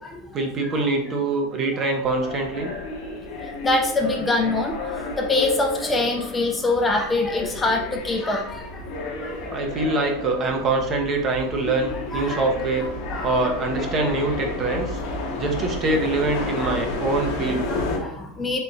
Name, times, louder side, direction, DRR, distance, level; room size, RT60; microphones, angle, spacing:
voice 1, 0.3-2.7 9.5-12.9 13.2-15.0 15.4-17.6, right 2 dB, 30° right, 3 dB, 0.7 m, -24 dB
sound 1, 2.0-18.0, left 2 dB, 50° left, 0.9 m, -32 dB
voice 2, 3.6-9.5 12.1-12.5 13.1-13.5 14.0-14.2 16.6-16.7 17.7-18.6, left 2 dB, 15° left, 3 dB, 0.5 m, -25 dB
3.5 x 2.8 x 2.6 m, 0.74 s
supercardioid pair, 125°, 0 cm